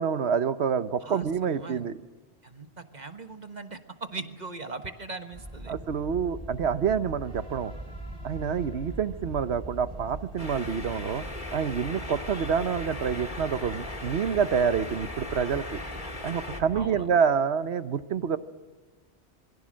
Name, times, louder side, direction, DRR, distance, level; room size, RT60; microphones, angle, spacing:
voice 1, 0.0-1.9 5.7-7.7 8.2-11.3 11.5-15.8 16.2-18.4, right 7 dB, 80° right, 12 dB, 1.2 m, -27 dB
voice 2, 1.0-1.9 2.4-5.7 16.7-17.1, right 3 dB, 40° right, 7 dB, 1.5 m, -40 dB
sound 1, 5.3-16.9, right 1 dB, 20° right, 4.7 m, -41 dB
sound 2, 10.4-16.6, left 2 dB, 45° left, 2.5 m, -39 dB
27.5 x 22.5 x 6.3 m, 1.4 s
omnidirectional pair, 1.1 m